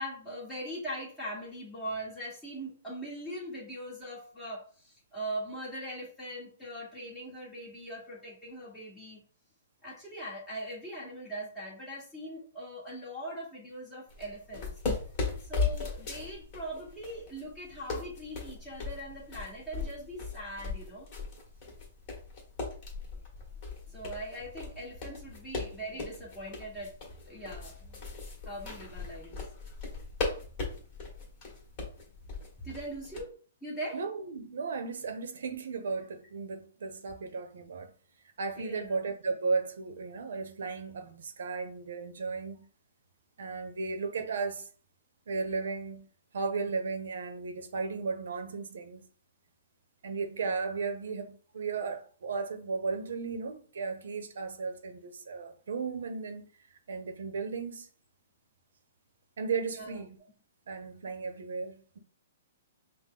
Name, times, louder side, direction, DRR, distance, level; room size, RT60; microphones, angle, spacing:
voice 1, 0.0-9.2 9.8-14.7 15.4-21.1 23.9-26.9 27.2-28.0 28.4-29.4 32.6-33.3 33.6-34.0 38.5-39.0 59.8-60.0, right 1 dB, 5° left, 1.4 m, -41 dB
sound 1, 14.1-33.2, left 4 dB, 25° left, 1.5 m, -38 dB
voice 2, 33.9-37.9 38.4-42.7 43.4-44.7 45.3-46.0 46.3-49.1 50.0-56.5 56.9-57.9 59.4-60.2 60.7-62.0, right 4 dB, 70° right, 0.8 m, -35 dB
5.6 x 2.2 x 3.8 m
hypercardioid pair, 175°, 0 cm